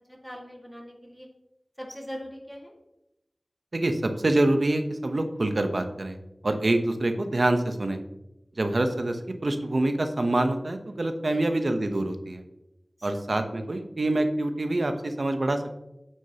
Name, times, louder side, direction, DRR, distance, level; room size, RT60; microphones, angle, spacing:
voice 1, 0.1-1.3 1.8-2.7 6.5-6.6 11.3-11.4 13.0-13.4, equal, 5° left, -1 dB, 2.0 m, -41 dB
voice 2, 3.7-6.2 6.4-8.0 8.6-12.4 13.0-15.8, right 2 dB, 70° right, 7 dB, 0.9 m, -26 dB
9.2 x 6.4 x 2.9 m, 0.89 s
wide cardioid pair, 45°, 0 cm